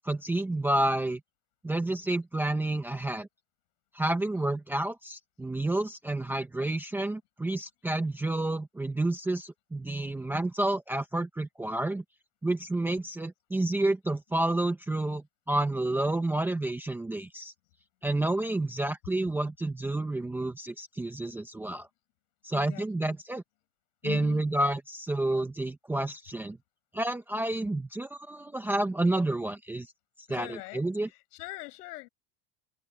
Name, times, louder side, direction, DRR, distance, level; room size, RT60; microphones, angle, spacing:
voice 1, 0.0-1.2 1.6-3.3 3.9-12.0 12.4-17.5 18.0-21.9 22.4-23.4 24.0-26.6 26.9-29.9 30.3-31.1, right 2 dB, 5° right, 0.8 m, -30 dB
voice 2, 22.5-23.2 24.0-24.5 30.3-32.1, left 20 dB, 75° left, 6.1 m, -42 dB
supercardioid pair, 180°, 47 cm